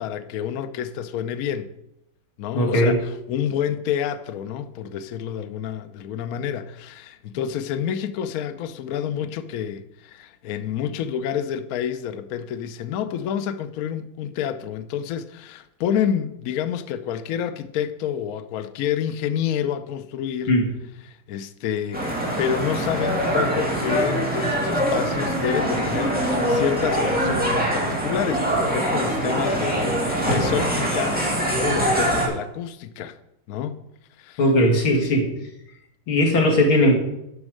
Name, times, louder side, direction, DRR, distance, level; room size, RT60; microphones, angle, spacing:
voice 1, 0.0-1.7 2.4-20.5 21.1-33.2 33.5-33.7 34.2-34.4, left 9 dB, 85° left, 0.8 m, -28 dB
voice 2, 2.5-3.0 20.5-20.7 34.4-35.3 36.1-37.0, left 1 dB, 70° left, 2.8 m, -18 dB
sound 1, 21.9-32.3, right 1 dB, 5° right, 2.3 m, -23 dB
9.7 x 6.3 x 6.3 m
omnidirectional pair, 2.4 m